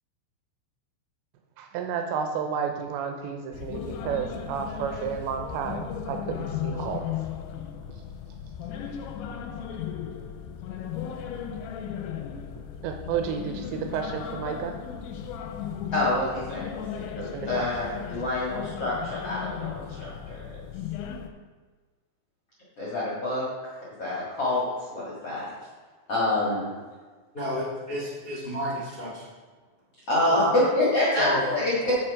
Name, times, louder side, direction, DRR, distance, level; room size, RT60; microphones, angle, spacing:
voice 1, 1.6-7.0 12.8-14.8 17.3-17.7, right 7 dB, 80° right, 4 dB, 2.7 m, -31 dB
sound 1, 3.5-21.3, left 8 dB, 85° left, 2.9 m, -36 dB
voice 2, 15.9-20.6 22.8-23.4 24.0-24.6 24.9-25.5 26.1-26.7 30.1-32.0, left 1 dB, 55° left, -7 dB, 1.7 m, -27 dB
voice 3, 27.3-29.2 30.3-30.5 31.2-31.4, equal, 35° left, -7 dB, 0.8 m, -31 dB
7.7 x 7.0 x 4.9 m, 1.4 s
omnidirectional pair, 5.5 m